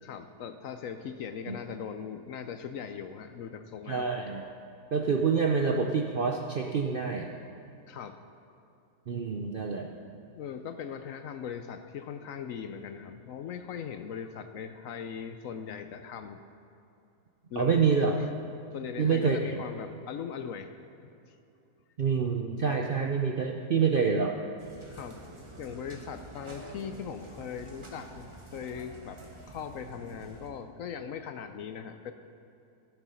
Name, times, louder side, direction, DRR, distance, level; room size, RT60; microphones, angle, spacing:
voice 1, 0.0-4.1 7.9-8.2 10.3-16.4 17.5-17.8 18.2-18.3 18.7-20.7 21.3-21.4 24.9-25.2 25.6-29.2 29.5-32.1, left 7 dB, 65° left, 8 dB, 0.9 m, -39 dB
voice 2, 3.9-4.4 4.9-7.3 9.1-9.9 17.6-18.2 19.0-19.6 22.0-24.3, right 5 dB, 55° right, 2 dB, 0.6 m, -27 dB
sound 1, 24.6-30.5, right 2 dB, 20° right, 1.1 m, -48 dB
14.5 x 7.0 x 5.6 m, 2.8 s
omnidirectional pair, 1.7 m